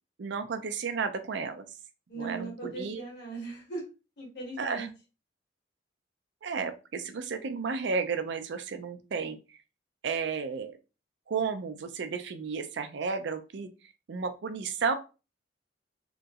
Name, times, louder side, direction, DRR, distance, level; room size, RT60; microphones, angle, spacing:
voice 1, 0.2-1.6 2.2-3.0 4.6-4.9 6.4-9.6 10.0-10.8 11.3-13.7 14.1-14.9, right 5 dB, 70° right, 9 dB, 0.5 m, -33 dB
voice 2, 2.1-3.8 4.2-4.9, right 3 dB, 65° left, -4 dB, 1.4 m, -38 dB
2.9 x 2.6 x 2.4 m, 0.31 s
head